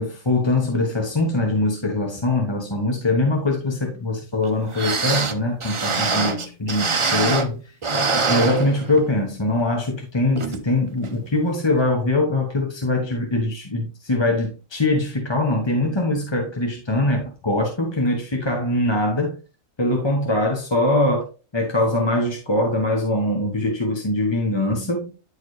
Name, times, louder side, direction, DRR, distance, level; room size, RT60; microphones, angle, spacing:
voice 1, 0.0-7.6 8.3-19.4 19.8-21.3 21.5-25.1, left 2 dB, 20° left, 0.9 m, -22 dB
sound 1, 4.4-4.5 4.7-7.6 7.8-9.2 9.6-9.7 10.4-10.6 11.0-11.1, right 4 dB, 50° right, 0.3 m, -24 dB
9.6 x 4.4 x 3.1 m
omnidirectional pair, 1.5 m